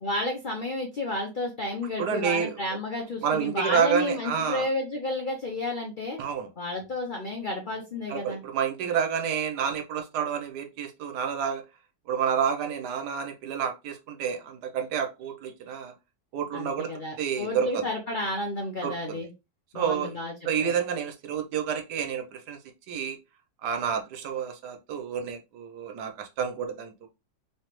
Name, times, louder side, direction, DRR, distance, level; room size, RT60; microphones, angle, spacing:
voice 1, 0.0-6.2 6.6-8.4 16.5-19.3 19.7-20.3 20.6-20.7, left 2 dB, 75° left, 0.4 m, -31 dB
voice 2, 2.0-2.6 3.2-4.7 6.2-6.5 8.1-11.6 12.1-15.9 16.3-16.9 17.2-17.9 18.8-19.2 19.7-20.1 20.4-22.6 22.9-23.2 23.6-27.1, right 7 dB, 75° right, 1.3 m, -29 dB
3.2 x 3.1 x 3.0 m
omnidirectional pair, 1.8 m